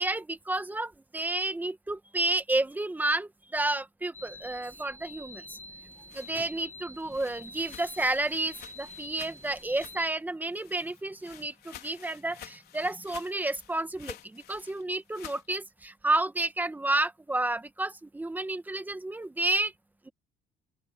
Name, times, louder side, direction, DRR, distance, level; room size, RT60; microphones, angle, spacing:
voice 1, 0.0-5.6 6.1-19.7, right 2 dB, 10° right, 1.3 m, -31 dB
sound 1, 4.1-10.1, left 1 dB, 10° left, 1.4 m, -47 dB
sound 2, 5.7-10.2 10.5-15.5, left 12 dB, 70° left, 4.3 m, -50 dB
open air
cardioid pair, 110°, 17 cm